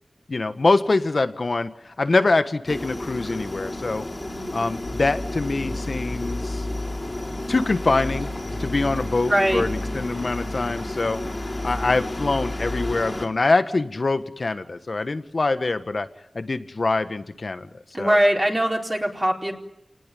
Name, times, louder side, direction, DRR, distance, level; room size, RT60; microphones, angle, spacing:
voice 1, 0.3-4.0 4.5-6.7 7.5-8.3 8.6-11.2 11.6-16.1 16.3-17.7 18.0-18.2, left 3 dB, 60° left, 10 dB, 1.5 m, -24 dB
sound 1, 2.7-13.3, left 1 dB, 35° left, 3.9 m, -33 dB
sound 2, 4.8-12.9, left 2 dB, 80° left, 5.2 m, -33 dB
voice 2, 9.3-9.7 17.9-19.5, equal, 20° right, -1 dB, 4.2 m, -21 dB
28.0 x 19.0 x 9.2 m, 0.85 s
wide cardioid pair, 60°, 0 cm